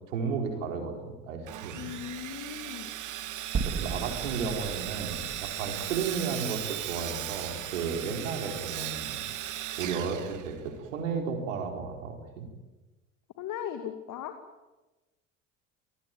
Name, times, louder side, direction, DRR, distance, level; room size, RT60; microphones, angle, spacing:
voice 1, 0.1-1.9 3.6-9.2 9.8-12.5, right 5 dB, 75° right, 3 dB, 4.6 m, -33 dB
Sawing, 1.5-10.9, right 12 dB, 50° right, 2.2 m, -37 dB
voice 2, 1.7-2.9 13.4-14.3, left 9 dB, 50° left, 7 dB, 2.5 m, -38 dB
sound 1, 3.5-7.8, right 5 dB, 35° right, 3.0 m, -37 dB
27.5 x 19.0 x 9.4 m, 1.1 s
hypercardioid pair, 65°, 38 cm